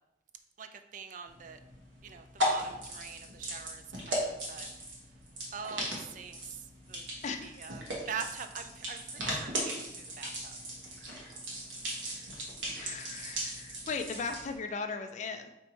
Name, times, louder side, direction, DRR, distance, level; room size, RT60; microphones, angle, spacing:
voice 1, 0.6-1.6 2.0-4.7 5.5-6.6 6.9-7.0 7.4-7.8 8.1-10.6, right 6 dB, 45° right, 8 dB, 0.3 m, -43 dB
sound 1, 1.3-14.5, equal, 85° right, 1.1 m, -37 dB
voice 2, 7.2-7.7 12.0-12.3 12.8-15.5, left 4 dB, 40° left, 7 dB, 0.3 m, -38 dB
4.4 x 2.6 x 4.3 m, 0.90 s
head